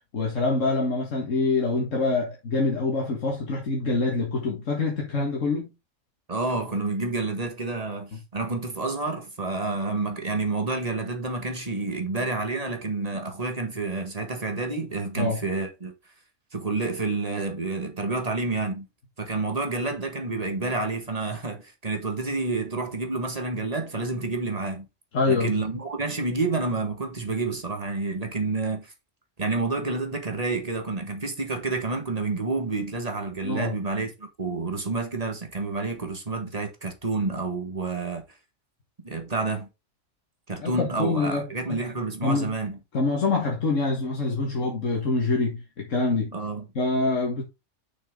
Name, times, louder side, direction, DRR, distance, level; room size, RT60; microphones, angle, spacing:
voice 1, 0.1-5.7 15.2-15.4 25.1-25.6 33.4-33.7 40.6-41.8 42.2-42.5 42.9-46.3 46.8-47.4, left 3 dB, 80° left, 2.0 m, -25 dB
voice 2, 6.3-15.9 16.5-18.9 19.2-24.9 25.3-28.9 29.4-38.2 39.0-39.7 40.5-42.8 46.3-46.6, right 3 dB, 30° right, 1.8 m, -29 dB
6.4 x 6.3 x 3.7 m
omnidirectional pair, 1.3 m